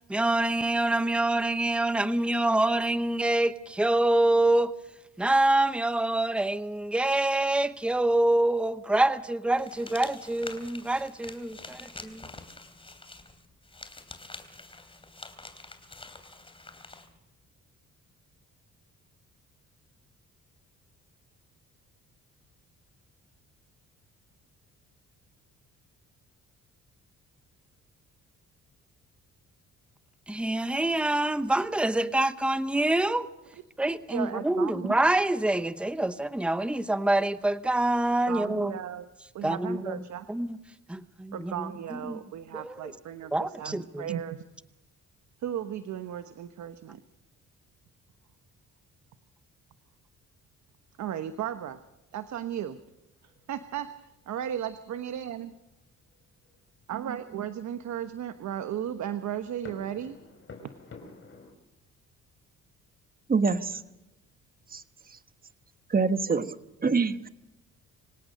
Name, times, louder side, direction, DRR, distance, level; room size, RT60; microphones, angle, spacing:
voice 1, 0.0-4.7 5.2-12.2 30.3-33.3 33.8-38.7 39.4-40.0 40.3-40.6 40.9-41.6 42.1-42.2 42.5-42.9 43.3-44.1, right 1 dB, 5° right, 0.9 m, -26 dB
sound 1, 9.6-17.1, left 2 dB, 20° left, 3.2 m, -46 dB
voice 2, 34.1-35.0 38.3-39.1 39.3-40.3 41.3-44.4 45.4-47.0 51.0-51.8 52.1-52.8 53.2-55.5 56.9-60.2, right 10 dB, 70° right, 1.2 m, -35 dB
sound 2, 53.1-54.0 54.2-54.4 55.0-55.6 56.1-61.5, left 3 dB, 40° left, 5.1 m, -51 dB
voice 3, 63.3-63.8 64.7-64.8 65.9-66.5 66.8-67.3, right 4 dB, 30° right, 1.3 m, -25 dB
25.5 x 17.5 x 6.5 m
cardioid pair, 90°, 30 cm